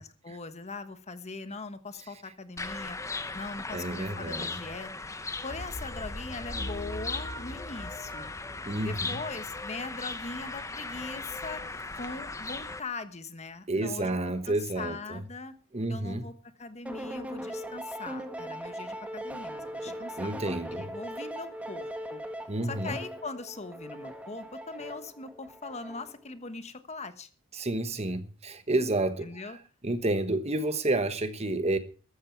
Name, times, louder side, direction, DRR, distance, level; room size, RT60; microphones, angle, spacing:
voice 1, 0.0-3.0 3.3-4.9 5.4-8.3 8.8-11.6 12.0-14.2 14.5-15.5 15.9-16.3 16.6-22.2 22.6-27.3 29.2-29.6, left 3 dB, 30° left, 1.2 m, -41 dB
sound 1, 2.6-12.8, left 3 dB, 15° left, 0.8 m, -38 dB
voice 2, 3.7-4.5 8.7-9.2 13.7-15.2 15.7-16.3 19.9-20.9 22.5-23.0 27.5-29.3 29.8-31.8, right 2 dB, 30° right, 1.2 m, -30 dB
sound 2, 5.5-9.7 10.3-11.0, equal, 65° left, 2.2 m, -42 dB
sound 3, 16.9-26.3, equal, 5° right, 1.8 m, -40 dB
14.0 x 13.0 x 4.6 m
head